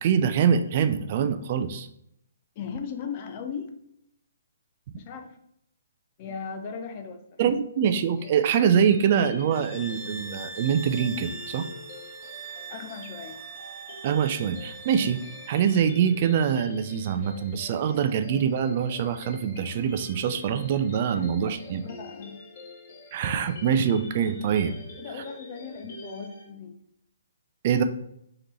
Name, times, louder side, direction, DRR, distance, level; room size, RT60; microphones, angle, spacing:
voice 1, 0.0-1.9 7.4-11.7 14.0-15.2 15.5-21.8 23.1-24.8 27.6-27.8, right 7 dB, 40° right, 10 dB, 0.3 m, -24 dB
voice 2, 2.6-3.7 5.0-5.4 6.2-7.4 12.7-13.4 21.1-22.4 25.0-26.8, left 6 dB, 35° left, 6 dB, 0.6 m, -38 dB
sound 1, 8.2-26.5, left 2 dB, 50° left, 1.5 m, -46 dB
sound 2, 9.5-15.9, right 3 dB, 10° right, 0.8 m, -42 dB
5.0 x 3.0 x 3.1 m, 0.75 s
hypercardioid pair, 145°, 0 cm